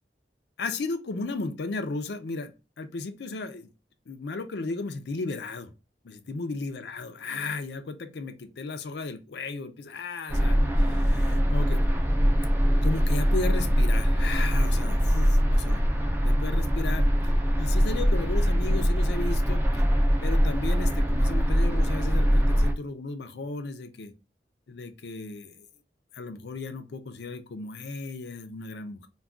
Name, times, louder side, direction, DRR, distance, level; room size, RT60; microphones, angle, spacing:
voice 1, 0.6-2.5 2.8-3.7 4.1-5.7 6.0-11.8 12.8-15.8 16.2-17.1 17.6-19.8 20.2-24.1 24.7-25.7 26.1-29.1, left 3 dB, 70° left, 9 dB, 0.4 m, -35 dB
sound 1, 10.3-22.7, equal, 10° right, 0.4 m, -23 dB
2.3 x 2.2 x 3.5 m, 0.29 s
head